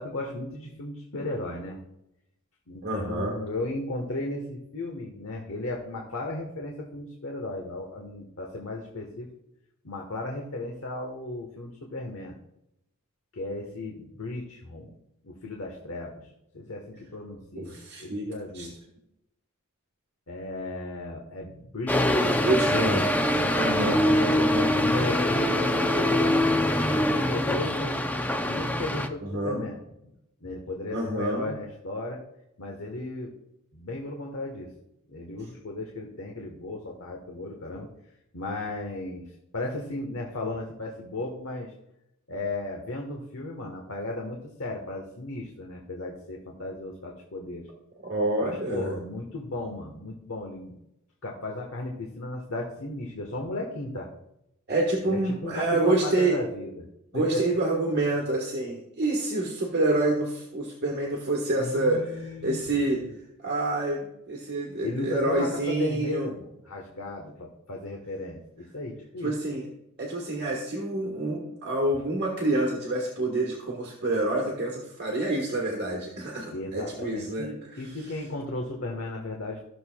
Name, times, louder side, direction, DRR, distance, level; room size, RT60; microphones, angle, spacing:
voice 1, 0.0-1.8 2.7-9.3 9.8-12.3 13.3-14.9 15.2-18.8 20.3-23.0 23.4-24.0 24.8-26.6 26.8-29.8 30.4-32.2 32.6-33.3 33.7-34.7 35.1-37.9 38.3-41.7 42.3-47.7 48.4-50.8 51.2-54.1 55.1-56.8 57.1-57.4 61.6-62.6 63.0-63.1 64.8-69.3 76.5-79.6, left 2 dB, 70° left, 0 dB, 1.2 m, -35 dB
voice 2, 2.8-3.3 17.5-18.3 18.5-18.7 22.4-23.0 23.5-24.8 29.2-29.6 30.9-31.5 48.0-48.9 54.7-56.4 57.1-63.0 63.4-66.3 69.2-69.7 70.0-77.8, right 2 dB, 50° right, -1 dB, 1.4 m, -27 dB
sound 1, 21.9-29.1, left 1 dB, 10° left, 0.5 m, -24 dB
14.0 x 6.7 x 2.3 m, 0.84 s
head